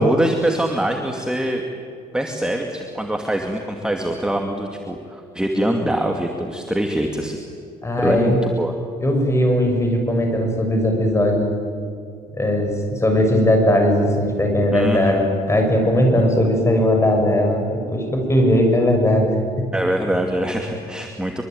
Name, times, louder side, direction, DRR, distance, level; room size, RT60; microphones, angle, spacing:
voice 1, 0.0-1.6 2.1-7.4 8.0-8.7 14.7-15.3 19.7-21.4, right 1 dB, 5° right, 3 dB, 2.5 m, -23 dB
voice 2, 7.8-8.4 9.0-11.5 12.4-19.3 19.6-19.7, left 1 dB, 15° left, 3 dB, 7.1 m, -18 dB
24.5 x 24.5 x 9.5 m, 2.4 s
cardioid pair, 110°, 17 cm